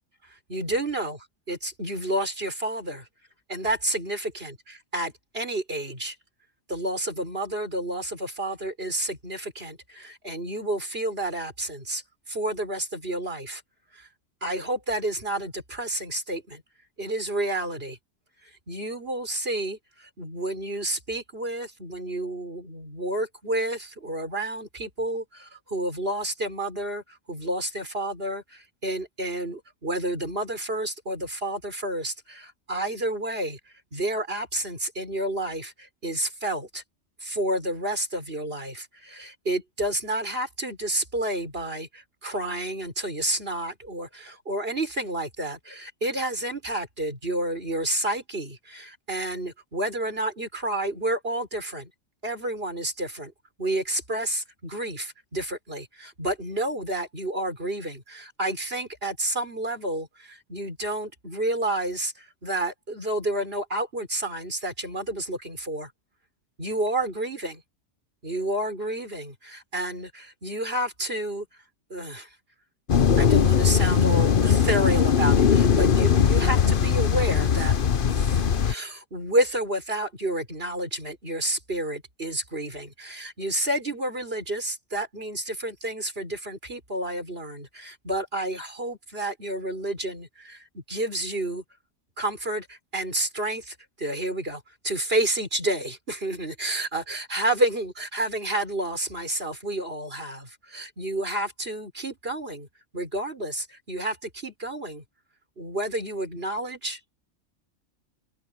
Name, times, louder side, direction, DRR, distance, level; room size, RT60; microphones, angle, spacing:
voice 1, 0.3-1.2 1.5-3.1 3.5-6.2 6.7-12.0 12.3-13.6 13.9-14.1 14.4-16.6 17.0-18.0 18.4-33.6 33.9-36.8 37.2-51.9 52.2-53.3 53.6-65.9 66.6-67.6 68.2-71.5 71.9-72.3 73.2-77.8 78.1-91.6 92.2-102.7 102.9-105.0 105.6-107.0, right 1 dB, 50° right, 6.2 m, -30 dB
sound 1, 72.9-78.7, left 7 dB, 45° left, 1.0 m, -20 dB
open air
omnidirectional pair, 1.3 m